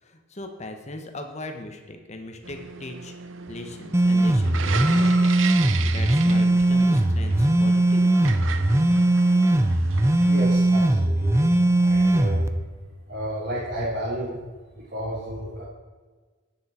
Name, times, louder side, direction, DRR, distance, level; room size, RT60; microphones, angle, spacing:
voice 1, 0.0-3.1 3.5-8.3, left 1 dB, 35° left, 5 dB, 1.3 m, -39 dB
sound 1, 2.4-10.6, right 6 dB, 90° right, 0.7 m, -35 dB
sound 2, 3.9-12.5, right 1 dB, 15° right, 0.5 m, -20 dB
voice 2, 10.2-11.5 11.8-12.4 13.1-14.4 14.7-15.6, equal, 55° right, -7 dB, 2.5 m, -32 dB
11.0 x 9.4 x 4.5 m, 1.4 s
head